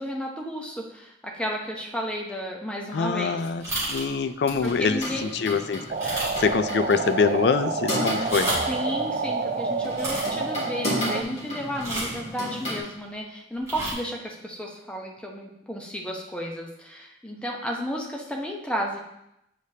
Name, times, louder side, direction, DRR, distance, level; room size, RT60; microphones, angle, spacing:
voice 1, 0.0-3.4 4.6-5.3 8.7-19.0, equal, 5° left, -1 dB, 0.8 m, -33 dB
voice 2, 2.9-8.5, left 5 dB, 65° left, 11 dB, 0.4 m, -25 dB
sound 1, 3.6-4.1 4.5-4.7 5.1-5.2 6.0-6.6 6.8-6.9 8.1-8.7 9.9-10.3 11.8-12.2 13.6-13.9, right 1 dB, 15° right, 2.2 m, -30 dB
sound 2, 4.4-12.8, left 1 dB, 35° left, 1.9 m, -34 dB
sound 3, 5.9-11.2, right 4 dB, 45° right, 0.4 m, -29 dB
7.9 x 4.9 x 2.8 m, 0.84 s
head